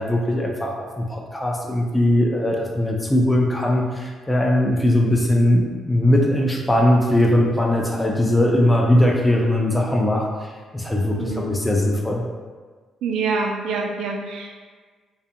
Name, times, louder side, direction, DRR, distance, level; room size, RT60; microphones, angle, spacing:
voice 1, 0.0-12.2, left 1 dB, 10° left, -1 dB, 0.4 m, -20 dB
voice 2, 11.2-11.5 13.0-14.6, right 4 dB, 80° right, 1 dB, 0.3 m, -26 dB
2.3 x 2.1 x 2.7 m, 1.5 s
cardioid pair, 90°, 0 cm